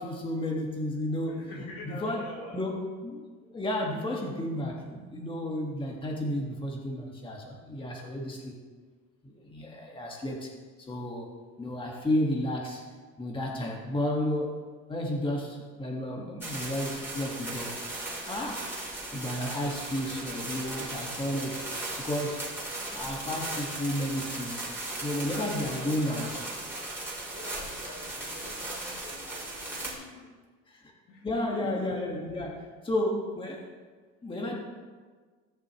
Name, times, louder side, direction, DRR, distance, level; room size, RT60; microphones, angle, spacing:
voice 1, 0.0-2.3 2.5-8.5 9.2-10.5 10.8-11.3 11.6-12.8 13.2-14.6 14.9-17.8 18.3-18.7 19.1-21.6 22.0-22.4 22.9-24.6 25.0-26.4 30.7-30.9 31.2-33.7 34.2-34.5, left 1 dB, 15° left, -1 dB, 1.7 m, -32 dB
voice 2, 1.3-2.6 25.2-27.0 27.3-30.3 31.1-31.8, left 2 dB, 75° left, -3 dB, 3.0 m, -46 dB
sound 1, 16.4-29.9, right 2 dB, 5° right, 3.6 m, -37 dB
18.0 x 6.7 x 3.1 m, 1.5 s
cardioid pair, 145°, 32 cm